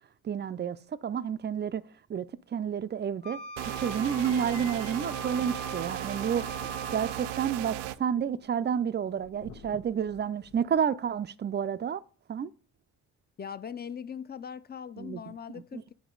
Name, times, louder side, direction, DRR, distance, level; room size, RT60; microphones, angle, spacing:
voice 1, 0.2-1.8 2.1-3.4 3.6-6.5 6.9-12.0 12.3-12.5 15.0-15.2 15.7-15.8, right 8 dB, 25° right, 0.5 m, -30 dB
Wind instrument woodwind instrument, 3.2-7.6, left 2 dB, 70° left, 1.5 m, -42 dB
sound 1, 3.6-8.0, right 14 dB, 90° right, 0.5 m, -36 dB
sound 2, 4.1-10.8, left 5 dB, 85° left, 1.2 m, -51 dB
voice 2, 13.4-15.9, left 7 dB, 25° left, 0.5 m, -40 dB
9.3 x 4.3 x 3.8 m
supercardioid pair, 60°, 43 cm